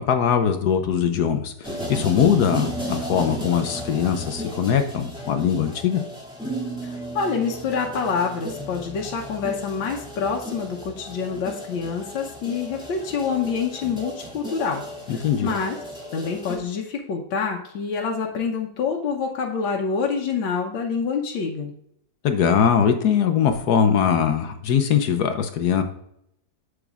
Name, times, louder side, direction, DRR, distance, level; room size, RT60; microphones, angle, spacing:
voice 1, 0.0-1.5 1.9-6.0 15.1-15.5 22.2-25.8, left 8 dB, 65° left, 7 dB, 1.1 m, -21 dB
sound 1, 1.6-16.6, right 1 dB, ahead, 2.4 m, -34 dB
voice 2, 6.8-14.8 15.1-15.8 16.1-21.7, left 5 dB, 90° left, 0 dB, 1.7 m, -27 dB
8.1 x 7.4 x 2.4 m, 0.75 s
omnidirectional pair, 2.1 m